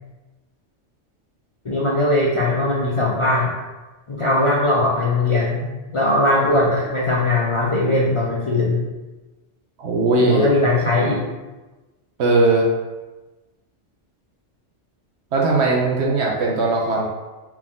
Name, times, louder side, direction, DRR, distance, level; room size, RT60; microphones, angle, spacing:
voice 1, 1.6-3.6 4.1-8.8 10.2-11.2, left 2 dB, 50° left, -5 dB, 0.4 m, -20 dB
voice 2, 9.8-10.5 12.2-12.7 15.3-17.1, right 2 dB, 65° right, -2 dB, 0.8 m, -18 dB
4.5 x 2.4 x 3.7 m, 1.2 s
omnidirectional pair, 1.3 m